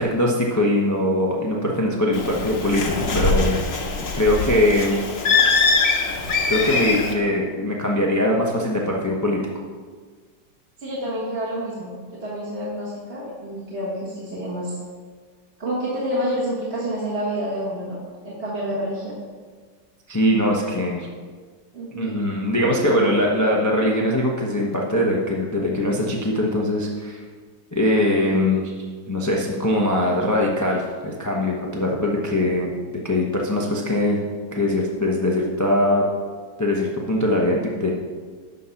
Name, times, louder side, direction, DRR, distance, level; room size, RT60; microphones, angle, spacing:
voice 1, 0.0-3.6 4.2-5.0 6.5-9.4 20.1-21.1 21.9-27.2 27.7-28.7 29.1-32.7 33.0-34.2 34.5-36.0 36.6-37.9, left 1 dB, 20° left, -2 dB, 0.5 m, -21 dB
Bird, 2.1-7.1, left 4 dB, 50° left, 1.2 m, -22 dB
voice 2, 10.8-14.8 15.6-18.0 18.2-19.2 21.7-22.1, equal, 35° right, -8 dB, 1.7 m, -28 dB
12.0 x 4.2 x 5.7 m, 1.5 s
omnidirectional pair, 2.0 m